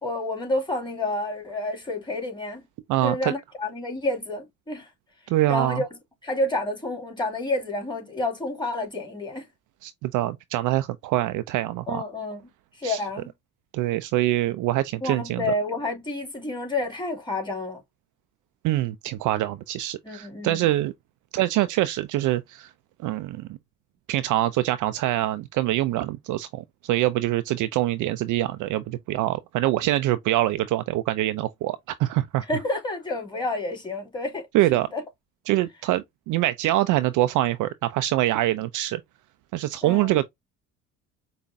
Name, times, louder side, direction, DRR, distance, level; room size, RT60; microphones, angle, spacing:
voice 1, 0.0-2.6 3.0-4.9 5.5-5.9 6.2-9.5 11.9-12.5 12.7-13.3 15.0-17.8 20.0-20.7 32.5-34.5 34.7-35.0 39.8-40.2, left 2 dB, 10° left, 2.5 m, -29 dB
voice 2, 2.9-3.3 5.3-5.8 9.8-12.0 12.8-13.0 13.7-15.5 18.6-20.9 21.3-22.7 23.0-23.6 24.1-32.4 34.5-34.9 35.5-39.0 39.5-40.2, right 15 dB, 50° right, 0.4 m, -24 dB
5.0 x 2.3 x 2.5 m
hypercardioid pair, 60°, 40 cm